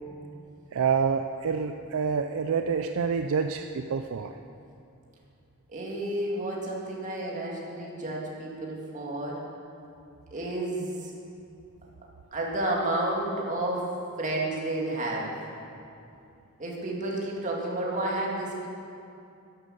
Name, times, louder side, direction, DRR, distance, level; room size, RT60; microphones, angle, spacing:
voice 1, 0.7-4.4, right 6 dB, 65° right, 7 dB, 0.5 m, -27 dB
voice 2, 5.7-9.4 10.3-11.1 12.3-13.9 14.2-15.3 16.6-18.7, right 1 dB, 35° right, -3 dB, 2.3 m, -31 dB
11.0 x 10.5 x 6.6 m, 2.6 s
head